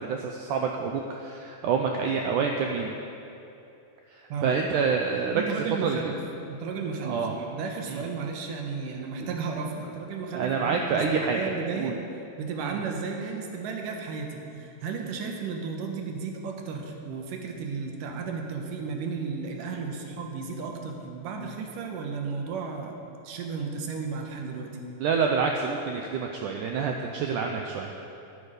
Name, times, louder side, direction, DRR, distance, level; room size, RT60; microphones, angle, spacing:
voice 1, 0.0-2.9 4.1-6.0 7.0-7.3 7.9-8.0 9.2-9.3 10.3-12.0 12.6-12.8 25.0-27.9, right 5 dB, 90° right, 2 dB, 1.8 m, -27 dB
voice 2, 5.3-6.2 6.5-12.0 12.4-23.0 23.2-24.8, right 5 dB, 70° right, 2 dB, 2.5 m, -34 dB
13.0 x 9.1 x 5.1 m, 2.8 s
omnidirectional pair, 4.3 m